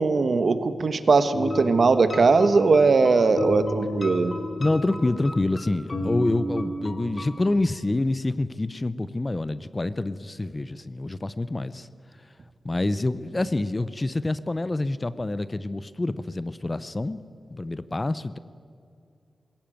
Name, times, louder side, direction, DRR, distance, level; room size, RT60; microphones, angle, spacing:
voice 1, 0.0-4.3, right 4 dB, 55° right, 11 dB, 1.2 m, -20 dB
sound 1, 1.3-7.5, left 1 dB, 40° left, 2.7 m, -33 dB
voice 2, 4.6-11.9 12.6-17.2 17.5-18.4, left 2 dB, 25° left, 15 dB, 0.6 m, -27 dB
21.0 x 17.5 x 9.1 m, 2.4 s
wide cardioid pair, 130°, 0 cm